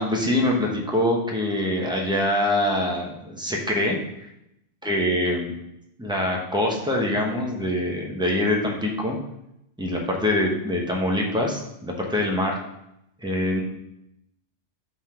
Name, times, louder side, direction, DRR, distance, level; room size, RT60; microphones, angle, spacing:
voice 1, 0.0-4.0 4.8-5.5 6.0-9.2 9.8-12.6 13.2-13.6, left 1 dB, 5° right, -1 dB, 1.0 m, -24 dB
5.5 x 3.9 x 5.7 m, 0.82 s
omnidirectional pair, 1.2 m